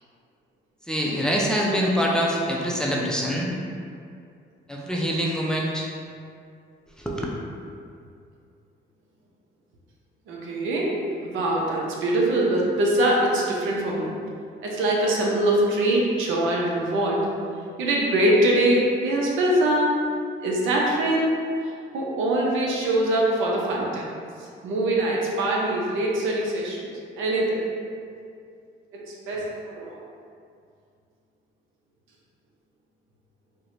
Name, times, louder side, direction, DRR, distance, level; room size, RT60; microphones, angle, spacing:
voice 1, 0.9-3.5 4.7-5.9 7.0-7.2, equal, 5° left, -3 dB, 0.5 m, -24 dB
voice 2, 10.3-11.0 11.2-14.1 14.6-17.3 17.8-19.9 20.4-21.3 21.6-24.0 24.4-26.9 27.2-27.7 28.9-30.0, right 1 dB, 85° right, -3 dB, 0.7 m, -23 dB
4.5 x 2.2 x 2.6 m, 2.4 s
cardioid pair, 90°, 20 cm